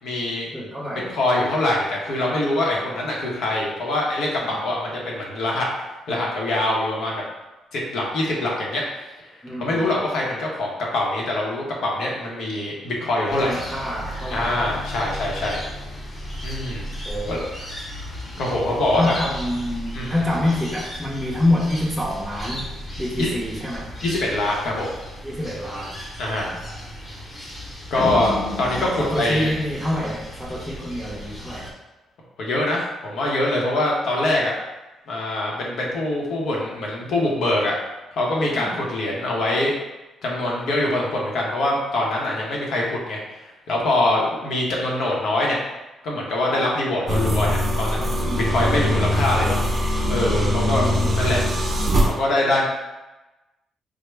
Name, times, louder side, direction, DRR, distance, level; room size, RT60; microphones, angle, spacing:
voice 1, 0.0-0.5 1.1-5.7 6.1-7.2 7.7-8.8 9.6-13.5 14.3-15.6 16.4-17.4 18.2-19.1 19.9-20.1 23.2-23.3 24.0-24.9 26.2-26.5 27.9-29.5 32.4-34.5 35.1-37.8 38.1-39.7 40.2-45.6 46.0-49.6 50.1-50.9 51.2-51.4 52.1-52.7, left 1 dB, 75° left, -3 dB, 0.8 m, -24 dB
voice 2, 0.5-1.1 2.7-2.9 4.4-4.7 9.4-9.9 13.4-14.8 17.0-17.5 19.0-22.7 23.0-23.9 25.2-26.0 26.3-26.6 28.2-28.4 29.0-31.7 38.5-38.8 48.3-48.5 50.5-51.1, left 1 dB, ahead, -9 dB, 0.6 m, -27 dB
sound 1, 13.3-31.7, equal, 25° left, 0.9 m, -35 dB
sound 2, 28.0-30.4, left 2 dB, 50° left, 0.5 m, -31 dB
sound 3, 47.1-52.1, equal, 40° right, 0.5 m, -22 dB
3.5 x 2.0 x 3.2 m, 1.1 s
cardioid pair, 90°, 0 cm